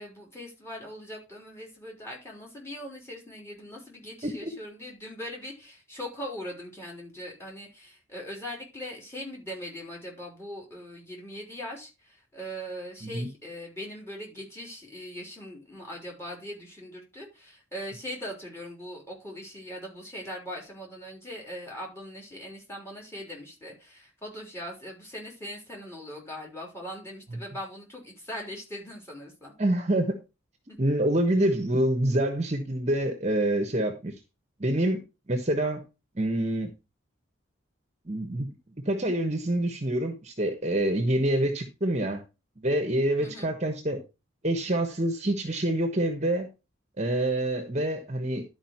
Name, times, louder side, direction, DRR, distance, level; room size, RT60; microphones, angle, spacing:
voice 1, 0.0-29.5 30.7-30.8 43.2-43.5, equal, 15° left, 3.6 m, -40 dB
voice 2, 29.6-30.2 30.8-34.1 34.6-35.8 36.1-36.7 38.1-38.5 38.8-42.2 42.6-44.0 44.4-46.5 47.0-48.4, right 1 dB, 35° right, 1.2 m, -26 dB
11.5 x 5.1 x 4.4 m
head